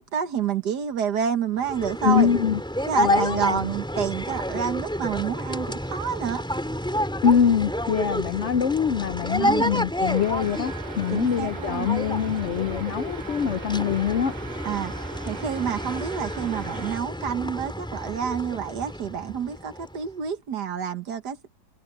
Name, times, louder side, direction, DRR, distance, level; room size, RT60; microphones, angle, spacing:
voice 1, 0.0-2.3 2.9-6.4 9.4-9.7 11.1-11.9 14.7-14.9 15.3-21.4, right 8 dB, 65° right, 1.8 m, -28 dB
sound 1, 1.6-20.1, equal, ahead, 4.0 m, -30 dB
voice 2, 2.0-2.6 3.0-3.7 7.2-14.3, left 8 dB, 70° left, 0.7 m, -24 dB
sound 2, 10.0-17.0, right 5 dB, 50° right, 1.5 m, -40 dB
omnidirectional pair, 2.0 m